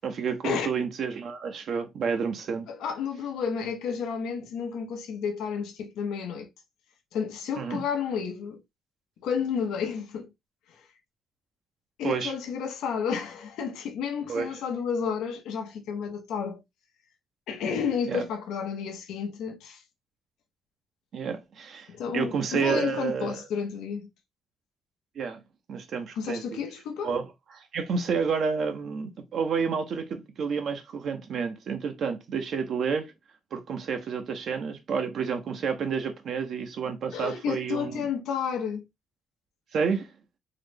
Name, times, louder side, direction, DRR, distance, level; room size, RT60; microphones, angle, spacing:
voice 1, 0.0-2.7 7.6-7.8 12.0-12.3 14.3-14.5 18.1-18.3 21.1-23.4 25.2-25.4 25.7-26.6 27.0-27.3 27.5-33.1 33.5-38.0 39.7-40.1, right 6 dB, 65° right, 0.6 m, -30 dB
voice 2, 2.7-6.5 7.1-8.6 9.2-10.3 10.7-10.9 12.0-16.6 17.5-19.8 21.9-24.1 26.2-27.1 37.1-38.8, left 6 dB, 85° left, 0.7 m, -31 dB
3.8 x 2.0 x 3.2 m
cardioid pair, 90°, 0 cm